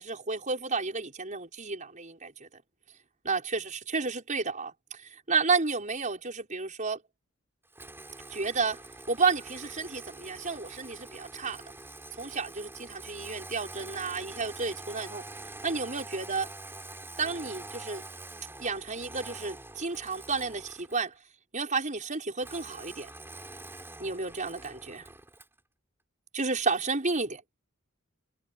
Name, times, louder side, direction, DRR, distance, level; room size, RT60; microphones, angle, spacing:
voice 1, 0.0-2.5 3.2-7.0 8.3-8.8 9.1-11.6 12.2-15.2 15.6-16.5 17.2-18.0 18.6-21.1 21.5-23.1 24.0-25.0 26.3-27.4, right 4 dB, 40° right, 5.7 m, -31 dB
Engine starting, 7.7-21.1 22.4-25.6, right 2 dB, 10° right, 6.8 m, -45 dB
head